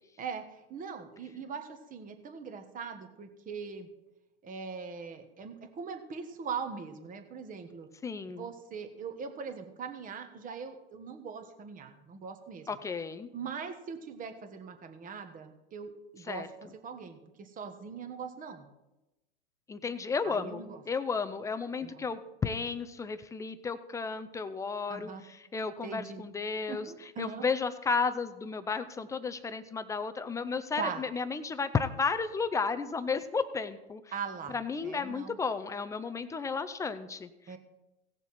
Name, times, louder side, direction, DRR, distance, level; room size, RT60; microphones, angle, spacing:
voice 1, 0.2-3.9 4.4-7.9 8.2-12.7 13.3-18.7 20.2-20.8 21.8-22.0 24.9-25.2 25.8-26.2 26.7-27.4 30.8-31.0 34.1-34.6 34.8-35.4 37.5-37.6, right 6 dB, 25° right, 7 dB, 1.4 m, -41 dB
voice 2, 8.0-8.5 12.7-13.3 16.3-16.5 19.7-34.0 34.5-37.6, left 5 dB, 10° left, 11 dB, 0.4 m, -33 dB
17.0 x 7.0 x 4.3 m, 0.99 s
hypercardioid pair, 110°, 34 cm